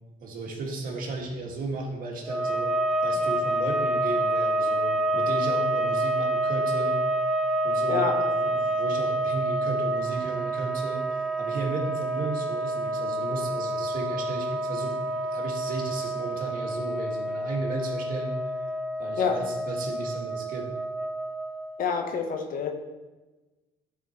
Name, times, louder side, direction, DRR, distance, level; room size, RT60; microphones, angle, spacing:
voice 1, 0.2-2.8 3.0-7.0 7.6-18.4 19.0-20.7, right 3 dB, 55° right, 0 dB, 1.8 m, -34 dB
sound 1, 2.2-21.9, right 1 dB, ahead, 0.4 m, -28 dB
voice 2, 21.8-22.7, left 6 dB, 55° left, 4 dB, 1.2 m, -27 dB
10.5 x 4.5 x 4.3 m, 1.2 s
cardioid pair, 110°, 17 cm